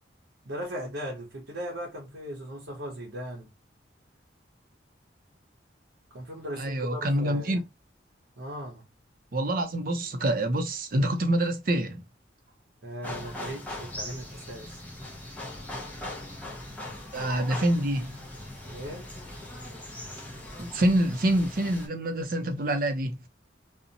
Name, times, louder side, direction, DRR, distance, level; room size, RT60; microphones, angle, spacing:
voice 1, 0.4-3.5 6.1-7.6 8.4-8.8 12.8-14.8 18.7-19.1, equal, 85° right, 0.8 m, -38 dB
voice 2, 6.6-7.6 9.3-12.0 17.1-18.2 20.6-23.2, right 1 dB, 50° right, 0.5 m, -26 dB
sound 1, 13.0-21.9, left 1 dB, 10° left, 0.5 m, -40 dB
2.6 x 2.1 x 2.6 m
head